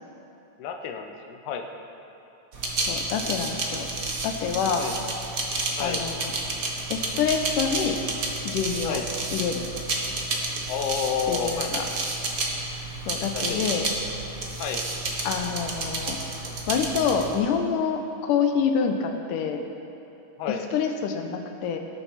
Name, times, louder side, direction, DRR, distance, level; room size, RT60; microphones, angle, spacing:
voice 1, 0.6-1.7 4.8-5.0 5.8-6.0 8.8-9.1 10.7-11.9 13.3-13.7 14.6-14.9 20.4-20.7, left 6 dB, 75° left, 4 dB, 2.2 m, -30 dB
sound 1, 2.5-17.3, right 2 dB, 45° right, 1.1 m, -30 dB
voice 2, 2.9-3.9 4.2-4.9 5.8-6.3 6.9-8.0 8.5-9.0 9.3-9.7 11.3-11.8 13.1-13.9 15.2-16.2 16.7-19.6 20.7-21.8, left 6 dB, 90° left, 4 dB, 2.4 m, -26 dB
19.5 x 7.3 x 5.8 m, 2.9 s
omnidirectional pair, 3.6 m